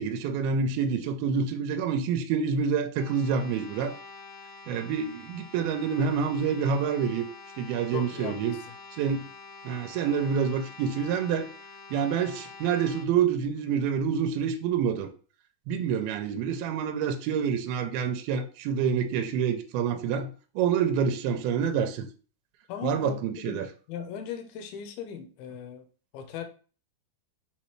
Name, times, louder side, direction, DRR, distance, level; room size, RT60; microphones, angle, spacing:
voice 1, 0.0-4.0 4.7-7.3 7.6-8.6 9.0-9.2 9.7-11.5 11.9-15.1 15.7-22.1 22.8-23.7, right 7 dB, 85° right, 7 dB, 2.4 m, -27 dB
sound 1, 2.9-13.1, left 4 dB, 70° left, 2.1 m, -47 dB
voice 2, 7.9-8.7 22.7-23.6 23.9-25.9 26.1-26.4, left 8 dB, 85° left, 6 dB, 2.5 m, -38 dB
5.6 x 2.9 x 3.1 m, 0.39 s
omnidirectional pair, 4.4 m